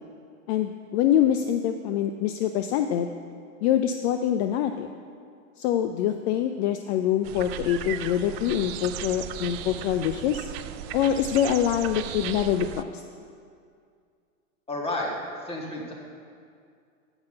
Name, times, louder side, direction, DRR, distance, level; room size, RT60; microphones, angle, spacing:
voice 1, 0.5-3.1 3.6-4.9 5.6-10.5 10.9-13.0, left 10 dB, 50° left, 7 dB, 0.5 m, -25 dB
sound 1, 7.2-12.8, right 11 dB, 50° right, 0.5 m, -36 dB
voice 2, 14.7-15.1 15.4-15.9, left 1 dB, 15° left, -1 dB, 1.7 m, -31 dB
7.9 x 5.6 x 7.6 m, 2.2 s
hypercardioid pair, 115°, 41 cm